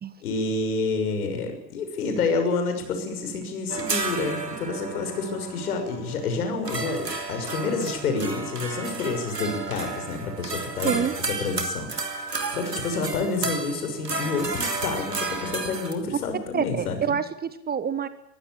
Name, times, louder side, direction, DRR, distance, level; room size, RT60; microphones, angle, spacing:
voice 1, 0.2-11.0 11.4-17.2, left 3 dB, 65° left, 6 dB, 6.4 m, -29 dB
sound 1, 3.7-15.9, right 3 dB, 85° right, 2.9 m, -32 dB
voice 2, 16.5-18.1, right 7 dB, 20° right, 14 dB, 1.4 m, -27 dB
22.5 x 16.0 x 8.7 m, 0.76 s
figure-of-eight pair, 90°, 47 cm